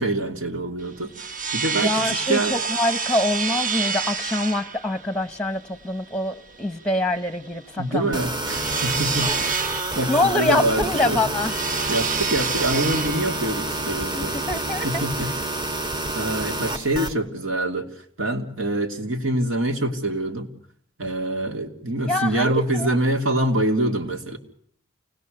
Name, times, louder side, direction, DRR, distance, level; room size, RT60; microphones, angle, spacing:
voice 1, 0.0-2.6 7.8-9.3 10.0-11.2 11.9-14.4 14.8-15.3 16.1-17.9 18.2-20.5 21.0-24.4, right 1 dB, 90° right, 3 dB, 3.2 m, -25 dB
sound 1, 0.8-15.4, right 5 dB, 45° right, 1.1 m, -29 dB
voice 2, 1.8-8.2 10.1-11.5 14.1-15.0 22.1-22.9, left 2 dB, 5° left, 11 dB, 0.9 m, -25 dB
sound 2, 8.1-17.1, right 2 dB, 25° right, 1.3 m, -29 dB
29.0 x 20.0 x 6.7 m, 0.65 s
head